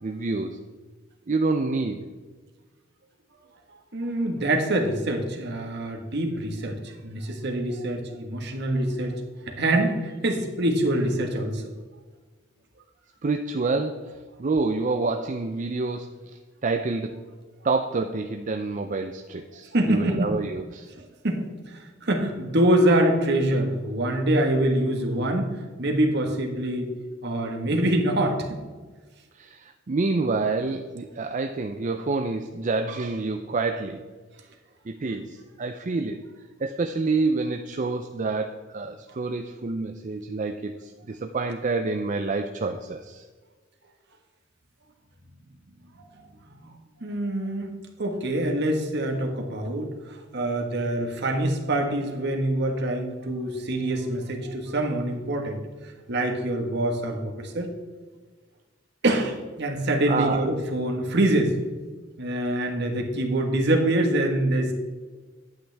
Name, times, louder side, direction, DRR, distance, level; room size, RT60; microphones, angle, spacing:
voice 1, 0.0-0.6 1.3-2.0 13.2-17.1 17.6-20.9 29.3-34.0 34.9-36.2 36.6-43.2 60.1-60.5, right 3 dB, 40° right, 5 dB, 0.5 m, -28 dB
voice 2, 3.9-9.1 9.4-11.6 19.7-20.4 21.2-26.9 27.2-28.6 46.5-47.7 48.0-55.6 56.1-57.7 59.0-61.5 62.2-64.7, right 1 dB, 60° right, 3 dB, 1.5 m, -25 dB
11.0 x 8.9 x 3.4 m, 1.4 s
head